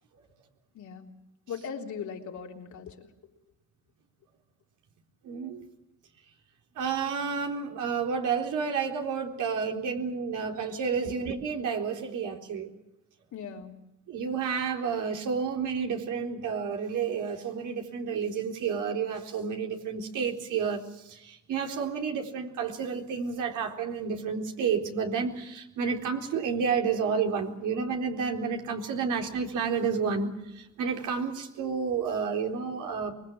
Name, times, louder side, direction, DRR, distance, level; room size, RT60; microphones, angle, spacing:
voice 1, 0.7-1.2 1.5-3.1 13.3-13.8, left 6 dB, 70° left, 1 dB, 3.6 m, -39 dB
voice 2, 5.2-5.6 6.8-12.7 14.1-33.1, right 6 dB, 80° right, 2 dB, 4.1 m, -30 dB
25.0 x 22.0 x 7.6 m, 0.87 s
cardioid pair, 90°, 30 cm